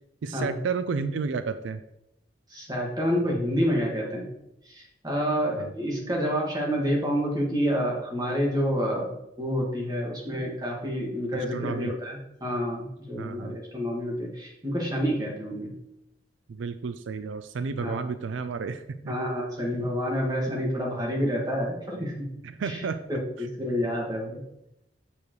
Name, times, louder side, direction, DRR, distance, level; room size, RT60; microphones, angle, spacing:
voice 1, 0.2-1.8 5.6-5.7 11.3-11.9 13.2-13.6 16.5-19.1 22.4-23.0, right 5 dB, 85° right, 11 dB, 0.4 m, -32 dB
voice 2, 2.5-4.3 4.7-15.7 17.8-18.0 19.1-22.3 22.6-24.4, equal, 20° right, -2 dB, 1.8 m, -28 dB
6.9 x 6.9 x 3.2 m, 0.83 s
head